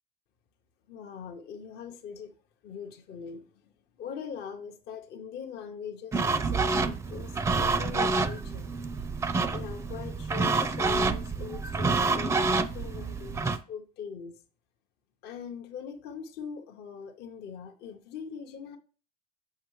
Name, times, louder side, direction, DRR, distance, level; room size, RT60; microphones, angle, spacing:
voice 1, 0.9-2.3 2.6-3.7 4.0-8.7 9.2-14.4 15.2-18.8, left 7 dB, 55° left, 0.8 m, -42 dB
sound 1, 6.1-13.6, right 4 dB, 15° right, 0.4 m, -28 dB
6.5 x 5.6 x 3.1 m
cardioid pair, 130°, 20 cm